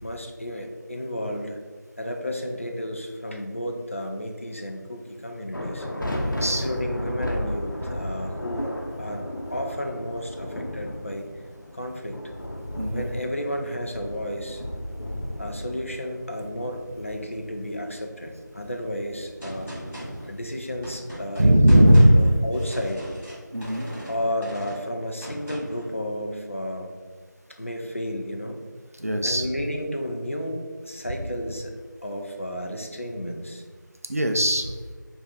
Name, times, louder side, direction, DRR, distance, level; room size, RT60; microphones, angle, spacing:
voice 1, 0.0-1.6 2.0-5.9 6.6-8.7 9.0-11.3 11.7-12.2 12.9-14.6 15.4-19.7 20.3-21.9 22.1-23.0 24.1-26.9 27.6-28.6 29.2-31.7 32.0-33.6, equal, 40° left, 3 dB, 0.5 m, -32 dB
sound 1, 5.5-20.9, left 1 dB, 85° left, 0.9 m, -35 dB
voice 2, 6.2-6.7 12.8-13.1 21.4-22.4 23.5-23.9 29.0-29.5 34.1-34.7, equal, 45° right, 5 dB, 0.4 m, -18 dB
Gunshot gunfire, 19.4-25.9, equal, 5° left, 0.9 m, -39 dB
5.0 x 2.4 x 4.0 m, 1.5 s
figure-of-eight pair, 175°, 11 cm